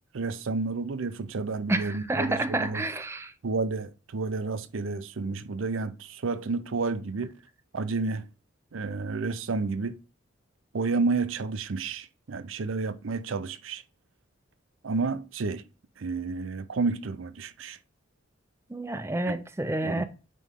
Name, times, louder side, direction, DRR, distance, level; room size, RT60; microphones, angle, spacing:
voice 1, 0.1-2.8 3.4-7.3 7.7-8.3 8.7-10.0 10.7-13.8 14.8-15.6 16.0-17.8 19.3-19.4 19.8-20.0, right 4 dB, 90° right, 0.6 m, -30 dB
voice 2, 1.7-3.3 18.7-20.0, right 2 dB, 15° right, 0.5 m, -29 dB
9.3 x 3.1 x 3.6 m
head